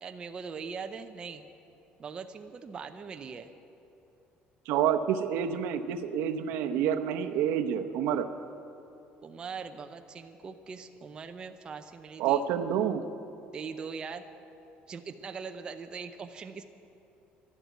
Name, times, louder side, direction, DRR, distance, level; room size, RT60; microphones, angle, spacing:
voice 1, 0.0-1.4 2.0-3.5 9.2-12.4 13.5-14.2 14.9-16.6, right 5 dB, 25° right, 7 dB, 0.6 m, -41 dB
voice 2, 4.7-8.3 12.2-13.0, right 9 dB, 75° right, 7 dB, 0.8 m, -28 dB
12.0 x 11.0 x 9.2 m, 2.8 s
cardioid pair, 160°, 4 cm